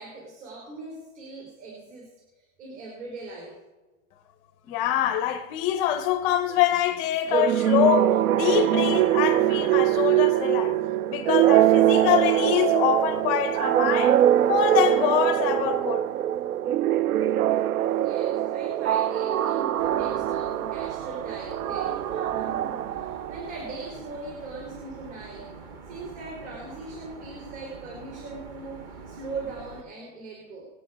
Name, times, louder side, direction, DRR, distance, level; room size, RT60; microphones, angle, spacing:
voice 1, 0.0-3.6 17.9-25.5 25.9-30.7, right 3 dB, 55° right, 4.7 m, -40 dB
voice 2, 4.7-10.8 11.1-14.2 14.5-16.1, left 10 dB, 15° left, 0.5 m, -25 dB
sound 1, 7.3-23.7, right 12 dB, 90° right, 0.6 m, -23 dB
sound 2, 19.8-29.8, right 4 dB, 25° right, 0.8 m, -44 dB
22.0 x 8.8 x 4.9 m
supercardioid pair, 165°, 42 cm